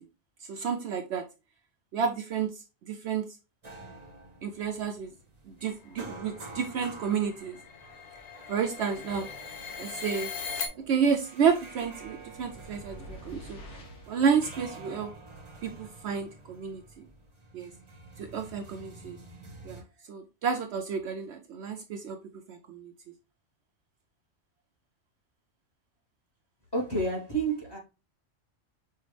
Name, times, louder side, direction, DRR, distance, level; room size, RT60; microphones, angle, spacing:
voice 1, 0.4-1.2 1.9-3.3 4.4-5.1 5.5-7.6 8.5-9.3 9.8-10.3 10.8-13.6 14.1-15.1 15.6-17.1 17.5-17.7 18.2-19.2 19.6-19.8 20.1-22.2 22.5-22.9, right 6 dB, 65° right, 0.8 m, -30 dB
sound 1, 3.6-19.8, right 3 dB, 30° right, 0.8 m, -48 dB
jack jill reverb (creepy), 5.9-10.7, left 6 dB, 85° left, 1.1 m, -40 dB
sound 2, 11.7-14.3, left 1 dB, 65° left, 1.3 m, -48 dB
voice 2, 26.7-27.8, right 3 dB, 20° left, 1.0 m, -29 dB
5.5 x 2.4 x 3.1 m
omnidirectional pair, 1.3 m